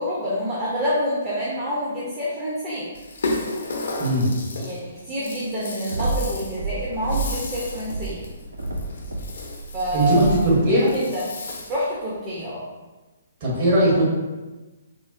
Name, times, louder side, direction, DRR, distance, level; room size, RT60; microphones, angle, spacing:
voice 1, 0.0-2.9 4.6-8.2 9.7-11.2 11.7-12.6, equal, 25° right, -8 dB, 0.6 m, -27 dB
Rattle (instrument), 2.9-11.9, left 2 dB, 60° left, 0.5 m, -34 dB
voice 2, 4.0-4.3 9.9-10.9 13.4-14.0, right 1 dB, 40° right, -5 dB, 1.0 m, -19 dB
sound 1, 5.9-7.5 7.8-10.6, right 3 dB, 75° right, 0.4 m, -30 dB
3.7 x 2.0 x 2.5 m, 1.2 s
figure-of-eight pair, 125°, 0 cm